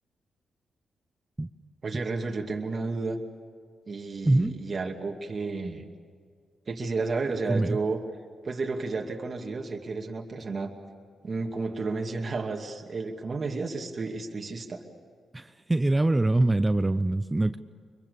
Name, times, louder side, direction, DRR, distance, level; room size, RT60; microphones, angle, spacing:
voice 1, 1.8-3.2 3.9-5.9 6.7-8.0 8.4-10.7 11.2-14.8, right 3 dB, 45° right, 1 dB, 2.5 m, -32 dB
voice 2, 15.3-17.6, right 2 dB, 20° right, 11 dB, 0.7 m, -24 dB
24.5 x 23.5 x 7.1 m, 2.1 s
cardioid pair, 65°, 0 cm